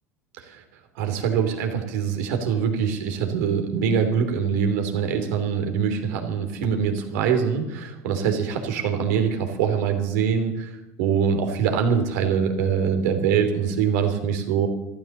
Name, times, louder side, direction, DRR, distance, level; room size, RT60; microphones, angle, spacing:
voice 1, 1.0-10.7 11.0-14.7, right 7 dB, 75° right, 5 dB, 3.1 m, -23 dB
14.0 x 13.0 x 7.1 m, 0.94 s
hypercardioid pair, 80°, 9 cm